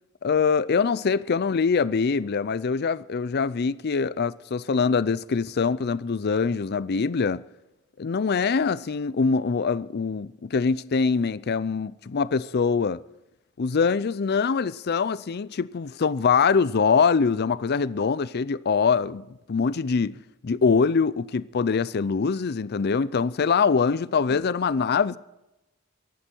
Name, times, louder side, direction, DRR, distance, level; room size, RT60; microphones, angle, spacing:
voice 1, 0.2-7.4 8.0-13.0 13.6-20.1 20.4-25.2, left 5 dB, 50° left, 0.5 m, -23 dB
23.5 x 11.5 x 4.5 m
head